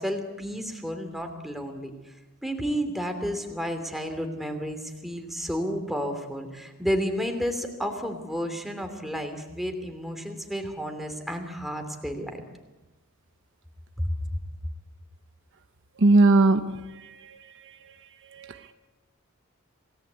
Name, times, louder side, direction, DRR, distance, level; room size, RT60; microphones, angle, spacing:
voice 1, 0.0-1.9 2.4-12.4 14.0-14.1, equal, ahead, 5 dB, 3.0 m, -31 dB
voice 2, 16.0-18.0 18.3-18.7, right 2 dB, 55° right, 8 dB, 1.1 m, -22 dB
28.0 x 18.5 x 8.2 m, 1.1 s
head